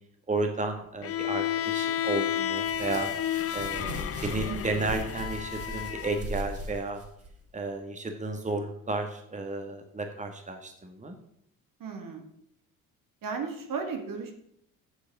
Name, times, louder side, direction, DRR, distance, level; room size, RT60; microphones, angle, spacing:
voice 1, 0.3-3.1 3.5-7.0 7.5-11.2, right 3 dB, 15° right, 5 dB, 1.6 m, -33 dB
Bowed string instrument, 1.0-6.2, left 10 dB, 35° left, 0.5 m, -31 dB
sound 1, 2.5-7.3, equal, 35° right, 2.7 m, -39 dB
voice 2, 4.5-4.9 11.8-12.2 13.2-14.3, right 5 dB, 50° right, 3 dB, 2.1 m, -35 dB
8.1 x 6.5 x 6.6 m, 0.71 s
hypercardioid pair, 55°, 42 cm